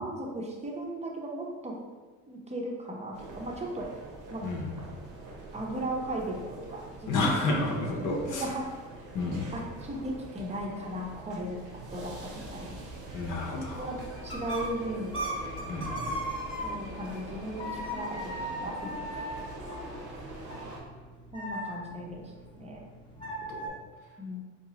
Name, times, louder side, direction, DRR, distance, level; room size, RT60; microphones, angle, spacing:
voice 1, 0.0-1.8 2.3-4.0 4.3-4.4 5.5-7.7 8.1-8.7 9.5-11.6 11.9-12.8 13.5-14.0 14.2-15.3 16.6-18.3 18.6-19.3 19.7-19.8 21.3-22.8 24.2-24.4, right 1 dB, 15° right, -1 dB, 0.7 m, -37 dB
sound 1, 3.1-20.8, right 2 dB, 65° right, 1.1 m, -43 dB
voice 2, 7.1-8.5 9.1-9.5 13.1-13.9 15.7-16.1 23.2-23.7, left 2 dB, 55° left, -1 dB, 0.8 m, -31 dB
sound 2, 12.1-17.1 17.6-23.7, right 1 dB, 10° left, 0.8 m, -39 dB
3.5 x 2.9 x 3.0 m, 1.4 s
supercardioid pair, 80°, 39 cm